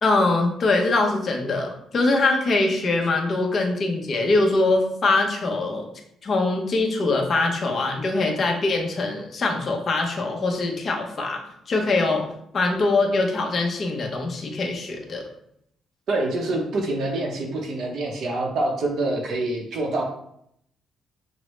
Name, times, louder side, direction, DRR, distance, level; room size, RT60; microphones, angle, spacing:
voice 1, 0.0-5.9 6.2-11.4 11.7-12.2 12.5-15.3, left 2 dB, 35° left, 1 dB, 0.7 m, -23 dB
voice 2, 16.1-20.0, right 2 dB, 60° right, 1 dB, 0.6 m, -26 dB
6.0 x 2.0 x 3.1 m, 0.74 s
cardioid pair, 150°, 0 cm